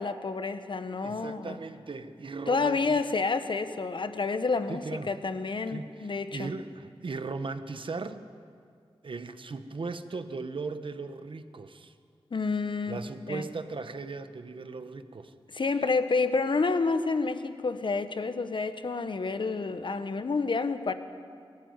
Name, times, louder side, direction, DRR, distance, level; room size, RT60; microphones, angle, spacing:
voice 1, 0.0-1.6 2.5-6.5 12.3-13.5 15.5-20.9, left 4 dB, 55° left, 10 dB, 1.2 m, -29 dB
voice 2, 1.0-2.8 4.7-5.1 5.7-8.3 9.0-11.9 12.9-15.3, right 4 dB, 60° right, 10 dB, 1.1 m, -38 dB
20.5 x 14.5 x 9.6 m, 2.3 s
wide cardioid pair, 85°, 10 cm